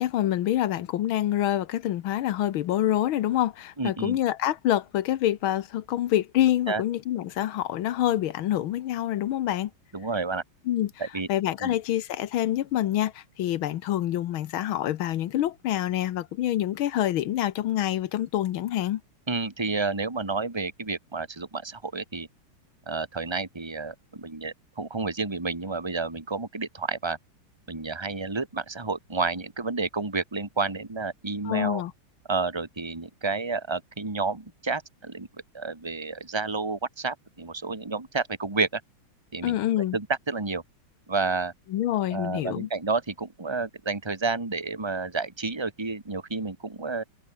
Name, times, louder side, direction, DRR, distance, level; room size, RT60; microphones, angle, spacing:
voice 1, 0.0-9.7 10.7-10.9 11.3-19.0 31.5-31.9 39.4-40.0 41.7-42.7, left 12 dB, 75° left, 1.6 m, -26 dB
voice 2, 3.8-4.2 6.7-6.8 9.9-10.4 11.0-11.3 11.6-11.8 19.3-22.3 22.9-27.2 27.7-31.8 32.3-35.3 35.5-38.8 39.3-39.6 39.9-40.6 41.1-41.5 42.1-47.0, right 4 dB, 10° right, 2.3 m, -30 dB
omnidirectional pair, 2.4 m